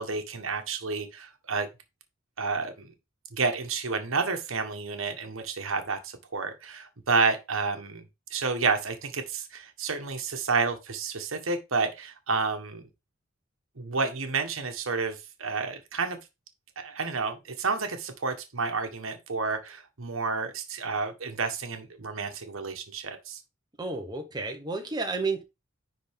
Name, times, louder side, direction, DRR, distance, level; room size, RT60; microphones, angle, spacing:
voice 1, 0.0-1.7 2.4-2.9 3.3-8.0 8.3-12.8 13.8-16.2 16.8-23.4, right 4 dB, 80° right, 1.2 m, -30 dB
voice 2, 23.8-25.4, right 3 dB, 20° right, 1.3 m, -31 dB
10.5 x 3.7 x 3.5 m
head